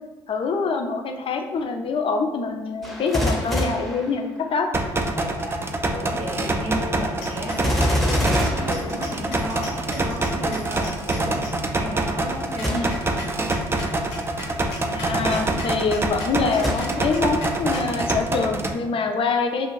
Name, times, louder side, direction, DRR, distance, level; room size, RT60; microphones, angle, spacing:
voice 1, 0.3-4.7 12.7-13.0 14.9-19.7, left 4 dB, 45° left, 4 dB, 0.4 m, -25 dB
Gunshot gunfire, 2.8-4.8 7.6-9.6 12.6-13.2 13.8-13.9 16.6-17.3 17.9-18.0, left 1 dB, ahead, 0.8 m, -26 dB
sound 1, 4.7-18.7, right 2 dB, 20° right, 0.4 m, -26 dB
voice 2, 5.1-5.6 5.9-13.4, equal, 65° right, -2 dB, 0.7 m, -34 dB
sound 2, 7.2-11.7 12.3-17.9, left 2 dB, 90° left, 0.8 m, -40 dB
2.5 x 2.4 x 3.1 m, 1.2 s
hypercardioid pair, 55°, 13 cm